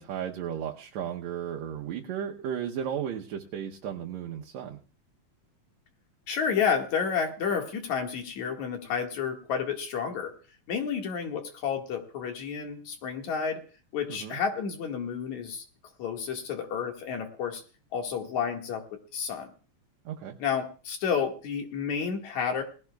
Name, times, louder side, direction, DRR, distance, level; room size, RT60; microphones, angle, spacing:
voice 1, 0.0-4.8 14.1-14.4 20.1-20.4, right 9 dB, 75° right, 1 dB, 2.1 m, -34 dB
voice 2, 6.3-10.3 10.7-13.6 13.9-15.6 16.0-17.6 17.9-18.8 19.1-19.5 20.4-22.6, left 6 dB, 75° left, 3 dB, 3.2 m, -30 dB
19.5 x 16.5 x 2.3 m, 0.37 s
omnidirectional pair, 3.3 m